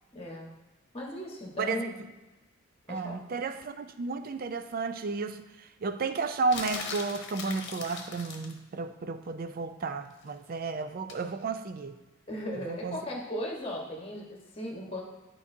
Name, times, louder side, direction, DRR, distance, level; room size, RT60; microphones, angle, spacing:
voice 1, 0.1-0.5 0.9-1.9 2.9-3.2 12.3-15.0, equal, 25° left, -2 dB, 1.3 m, -37 dB
voice 2, 1.6-1.9 2.9-12.0 12.5-13.0, right 4 dB, 45° right, 10 dB, 0.4 m, -33 dB
sound 1, 6.5-8.6 11.1-11.3, left 4 dB, 55° left, 1.0 m, -39 dB
11.0 x 4.7 x 2.7 m, 1.1 s
head